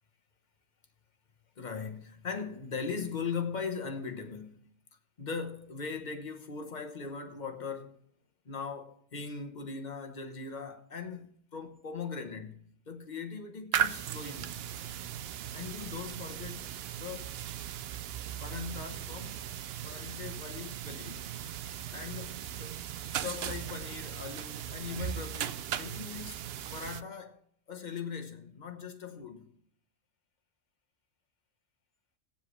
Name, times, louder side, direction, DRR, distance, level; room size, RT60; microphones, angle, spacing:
voice 1, 1.6-4.6 5.2-8.0 8.5-14.5 15.5-17.4 18.4-19.4 19.8-21.3 21.9-22.8 23.2-26.4 26.7-27.4 27.7-29.5, left 5 dB, 40° left, 1.1 m, -40 dB
sound 1, 13.7-27.0, right 10 dB, 65° right, 0.7 m, -37 dB
18.5 x 7.4 x 3.3 m
omnidirectional pair, 1.3 m